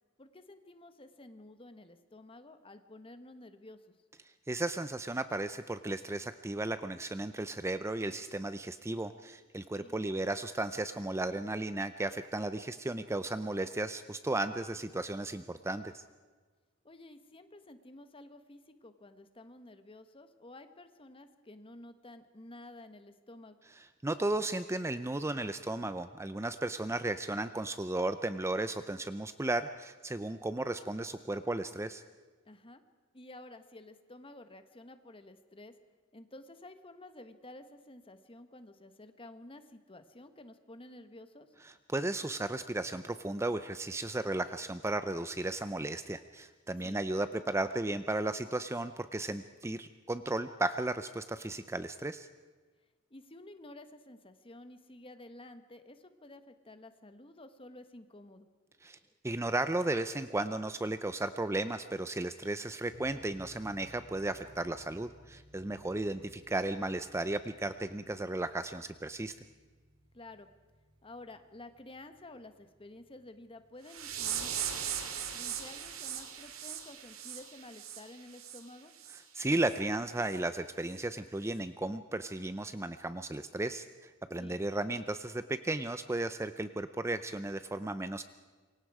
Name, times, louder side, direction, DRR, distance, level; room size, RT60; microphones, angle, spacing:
voice 1, 0.2-3.8 9.8-9.9 16.8-23.5 32.4-32.8 33.1-35.7 36.1-41.5 46.8-47.0 53.1-58.5 70.1-70.5 71.0-74.5 75.3-78.9 84.4-84.5, left 1 dB, 25° left, 9 dB, 1.4 m, -51 dB
voice 2, 4.5-16.0 23.8-32.0 41.6-52.3 58.8-59.0 59.2-69.4 79.1-88.2, right 2 dB, 15° right, 11 dB, 0.6 m, -35 dB
sound 1, 62.9-73.7, equal, 55° right, 5.2 m, -60 dB
sound 2, 73.9-78.6 79.0-79.2 79.6-79.8 80.3-80.4 80.9-81.0, right 9 dB, 90° right, 2.2 m, -39 dB
27.5 x 23.5 x 4.9 m, 1.4 s
head